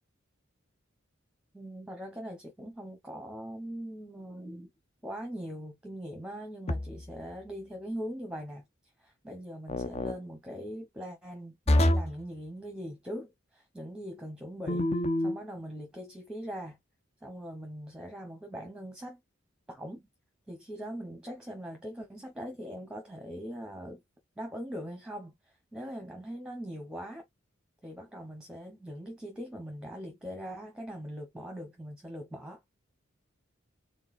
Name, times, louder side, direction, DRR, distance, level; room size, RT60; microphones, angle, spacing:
voice 1, 1.5-4.7 5.0-8.6 9.0-14.9 15.2-16.8 17.2-19.2 19.7-20.1 20.5-24.0 24.4-25.3 25.7-27.2 27.8-32.6, equal, 5° right, 1.0 m, -41 dB
sound 1, 6.7-7.2 9.7-10.2 11.7-12.2 14.7-15.4, left 1 dB, 35° left, 0.5 m, -26 dB
4.6 x 3.9 x 2.5 m
head